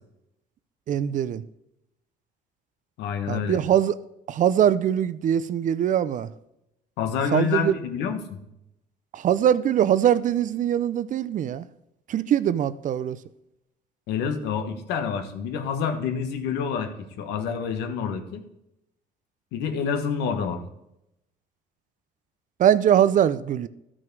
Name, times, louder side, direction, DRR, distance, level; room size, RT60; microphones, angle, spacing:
voice 1, 0.9-1.4 3.3-4.0 4.3-6.3 7.3-7.8 9.1-11.7 12.1-13.2 22.6-23.7, right 10 dB, 50° right, 0.5 m, -22 dB
voice 2, 3.0-3.6 7.0-8.4 14.1-18.4 19.5-20.6, left 6 dB, 90° left, 1.3 m, -28 dB
12.5 x 6.2 x 4.6 m
cardioid pair, 110°, 17 cm